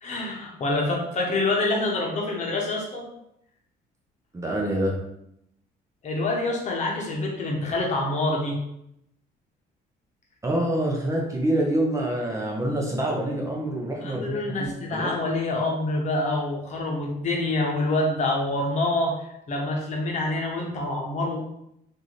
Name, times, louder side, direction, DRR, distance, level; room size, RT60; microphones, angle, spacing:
voice 1, 0.0-3.0 6.0-8.6 14.0-19.1 19.5-21.4, left 2 dB, 45° left, -1 dB, 1.0 m, -26 dB
voice 2, 4.3-4.9 10.4-15.1, right 1 dB, 20° right, -1 dB, 0.8 m, -26 dB
3.7 x 2.7 x 3.2 m, 0.78 s
cardioid pair, 110°, 17 cm